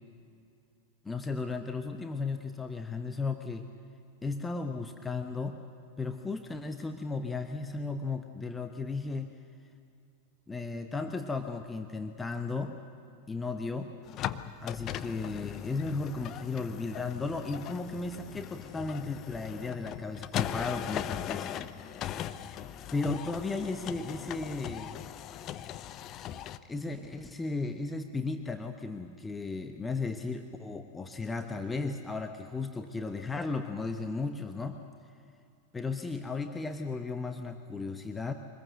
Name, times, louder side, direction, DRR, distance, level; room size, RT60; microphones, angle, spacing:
voice 1, 1.0-3.7 4.2-5.6 6.0-9.3 10.5-12.8 13.3-13.9 14.6-21.6 22.9-25.0 26.7-34.8 35.7-38.3, left 3 dB, 10° left, 6 dB, 1.0 m, -35 dB
sound 1, 14.0-26.6, left 11 dB, 35° left, 0.8 m, -39 dB
24.5 x 20.5 x 8.0 m, 2.6 s
figure-of-eight pair, 90°, 0 cm